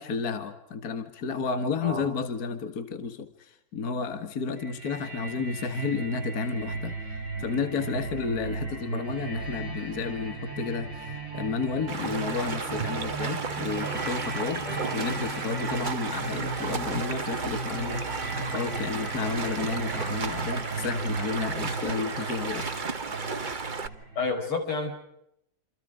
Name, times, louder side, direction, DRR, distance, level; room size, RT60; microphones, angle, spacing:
voice 1, 0.0-14.7 14.9-22.7, left 5 dB, 45° left, 8 dB, 2.0 m, -32 dB
sound 1, 4.6-24.3, right 3 dB, 45° right, 6.1 m, -36 dB
Stream, 11.9-23.9, right 4 dB, 30° right, 0.9 m, -33 dB
voice 2, 24.2-25.0, left 3 dB, 80° left, 5 dB, 6.0 m, -30 dB
28.0 x 27.5 x 5.0 m, 0.79 s
omnidirectional pair, 2.4 m